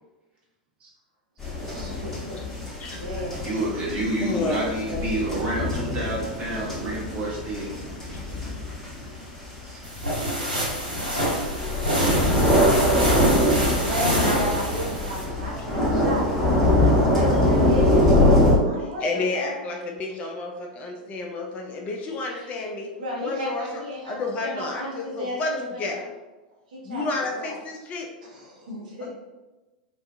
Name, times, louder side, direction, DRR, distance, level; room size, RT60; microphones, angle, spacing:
sound 1, 1.4-18.6, left 1 dB, 10° left, 0.9 m, -23 dB
voice 1, 1.6-3.6 13.3-16.3 16.6-19.6 22.9-26.0 26.7-27.6 28.3-29.1, equal, 65° right, -3 dB, 0.7 m, -34 dB
voice 2, 3.4-7.7 8.1-8.2 9.6-9.8 22.3-22.5, right 1 dB, 30° right, -5 dB, 0.9 m, -29 dB
voice 3, 4.2-5.0 18.7-22.9 23.2-26.0 26.8-28.1 29.0-29.1, left 3 dB, 30° left, 2 dB, 0.3 m, -30 dB
sound 2, 9.8-15.2, equal, 80° right, 1.2 m, -25 dB
2.4 x 2.3 x 2.4 m, 1.1 s
figure-of-eight pair, 90°, 5 cm